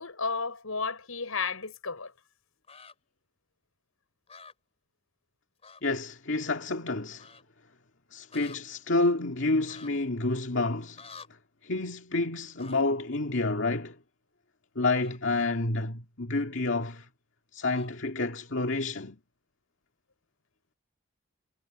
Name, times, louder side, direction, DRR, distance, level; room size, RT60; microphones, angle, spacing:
voice 1, 0.0-2.1, left 5 dB, 90° left, 5.6 m, -33 dB
sound 1, 2.6-2.9 4.3-4.5 5.6-5.8 6.1-6.2 7.2-7.4 8.3-8.6 9.6-9.9 11.0-11.3 12.6-12.8 14.9-15.2 17.7-17.9, left 5 dB, 30° left, 3.6 m, -49 dB
voice 2, 5.8-7.3 8.1-11.0 11.6-14.0 14.8-17.1 17.5-19.2, left 2 dB, 60° left, 2.3 m, -29 dB
head